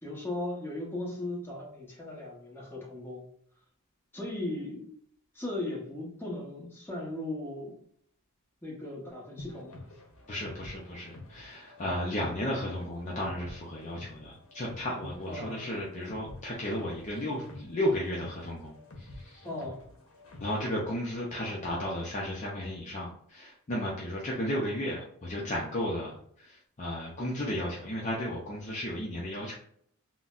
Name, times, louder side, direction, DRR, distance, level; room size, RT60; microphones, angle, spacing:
voice 1, 0.0-3.3 4.1-4.9 5.3-7.7 8.6-9.8 15.3-15.7 19.4-19.8, left 1 dB, 10° left, -4 dB, 0.9 m, -37 dB
sound 1, 9.4-20.7, left 2 dB, 65° left, 0.8 m, -49 dB
voice 2, 10.3-19.5 20.4-29.5, left 1 dB, 35° left, -4 dB, 0.5 m, -34 dB
3.9 x 2.0 x 2.4 m, 0.64 s
head